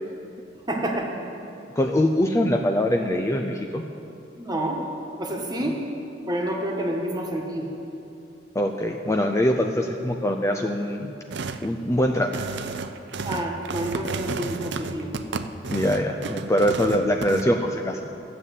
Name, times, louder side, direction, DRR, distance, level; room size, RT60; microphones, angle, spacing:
voice 1, 0.7-1.1 4.4-4.8 5.2-5.8 6.3-7.7 13.2-15.1, right 1 dB, 20° right, 0 dB, 1.5 m, -28 dB
voice 2, 1.8-3.8 5.6-5.7 8.5-11.1 11.6-12.3 15.7-18.0, left 1 dB, 15° left, 3 dB, 0.5 m, -23 dB
sound 1, 11.3-11.7 12.2-17.4, right 4 dB, 65° right, 0.5 m, -32 dB
13.0 x 7.3 x 8.2 m, 2.8 s
head